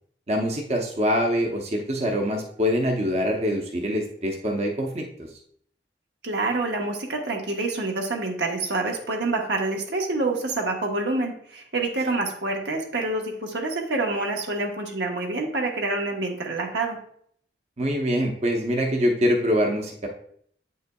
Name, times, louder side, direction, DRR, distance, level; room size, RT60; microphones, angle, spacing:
voice 1, 0.3-5.0 17.8-20.1, equal, 35° right, 1 dB, 0.7 m, -24 dB
voice 2, 6.2-17.0, right 2 dB, 80° right, 1 dB, 1.2 m, -27 dB
8.6 x 5.4 x 2.3 m, 0.62 s
head